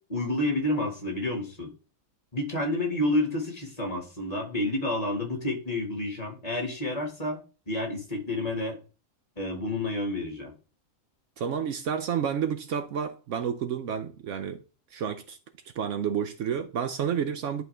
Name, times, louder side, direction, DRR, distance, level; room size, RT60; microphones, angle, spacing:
voice 1, 0.1-1.7 2.3-7.4 7.7-8.8 9.4-10.5, left 1 dB, 30° left, 2.0 m, -29 dB
voice 2, 11.4-14.6 14.9-15.4 15.8-17.6, right 8 dB, 65° right, 0.9 m, -30 dB
10.5 x 4.4 x 3.4 m
omnidirectional pair, 1.4 m